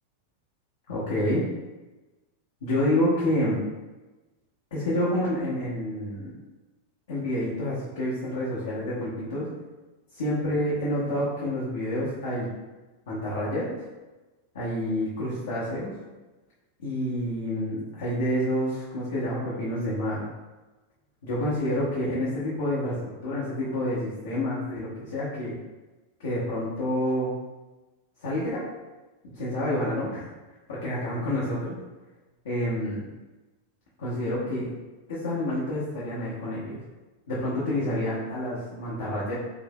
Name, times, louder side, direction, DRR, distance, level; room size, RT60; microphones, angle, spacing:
voice 1, 0.9-1.4 2.6-3.7 4.7-6.3 7.1-9.5 10.1-12.5 13.1-13.9 14.5-15.9 16.8-20.3 21.2-25.6 26.2-27.3 28.2-28.6 29.3-30.2 30.7-31.8 32.4-33.1 34.0-34.7 35.1-36.8 37.3-39.3, left 1 dB, 60° left, -9 dB, 0.9 m, -28 dB
3.7 x 2.7 x 2.3 m, 1.1 s
figure-of-eight pair, 90°, 0 cm